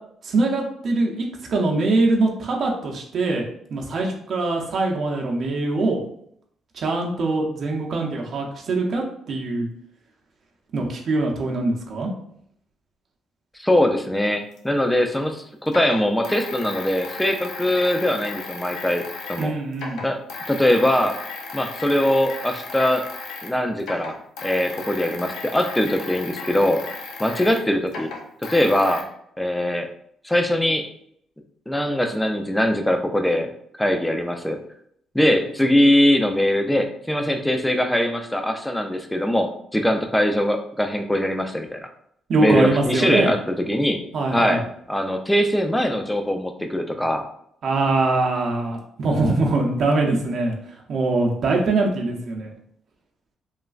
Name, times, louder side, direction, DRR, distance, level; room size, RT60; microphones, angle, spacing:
voice 1, 0.2-3.4 3.7-6.0 6.7-9.7 10.7-12.1 19.4-20.0 42.3-43.3 44.1-44.6 47.6-50.6 50.9-52.5, right 2 dB, 60° right, 0 dB, 0.5 m, -23 dB
voice 2, 13.6-19.0 19.3-19.5 20.0-20.2 20.5-21.2 21.5-23.1 23.4-24.1 24.4-26.8 27.2-28.1 28.5-29.0 29.4-29.9 30.2-30.9 31.7-33.5 33.8-34.6 35.1-41.9 42.4-44.0 44.3-44.6 44.9-47.2, left 1 dB, 5° left, 5 dB, 0.4 m, -21 dB
sound 1, 14.6-14.7 15.7-19.5 19.7-23.5 23.8-29.0, left 4 dB, 80° left, 0.5 m, -35 dB
3.1 x 2.3 x 2.4 m, 0.69 s
cardioid pair, 90°, 0 cm